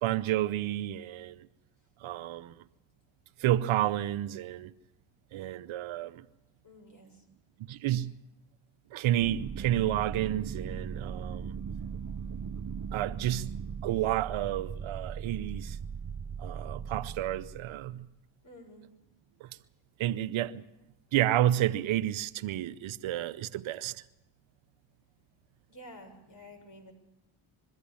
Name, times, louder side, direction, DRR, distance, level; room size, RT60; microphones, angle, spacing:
voice 1, 0.0-1.5 2.0-2.5 3.4-4.7 5.3-6.2 7.7-8.1 8.9-11.5 12.9-13.5 13.8-15.8 16.4-18.1 19.4-19.5 20.0-20.6 21.1-24.0, right 13 dB, 80° right, 0.8 m, -30 dB
voice 2, 6.6-7.2 18.4-18.9 25.7-26.9, equal, 40° left, 6.6 m, -51 dB
sound 1, 9.2-17.9, right 6 dB, 40° right, 1.0 m, -38 dB
22.5 x 13.5 x 8.6 m
supercardioid pair, 55°, 47 cm